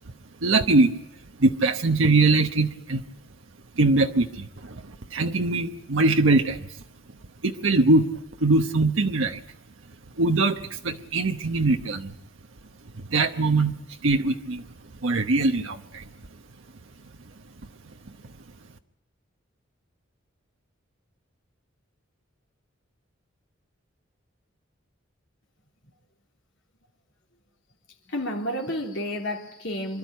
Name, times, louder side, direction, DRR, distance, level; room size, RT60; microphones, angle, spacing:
voice 1, 0.4-0.9 1.4-3.0 3.8-6.7 7.4-8.1 8.4-9.4 10.2-12.1 13.1-13.8 14.0-14.6 15.0-16.0, right 3 dB, 80° right, 1.0 m, -22 dB
voice 2, 28.1-30.0, equal, 65° left, 3.4 m, -30 dB
27.0 x 12.0 x 9.5 m
head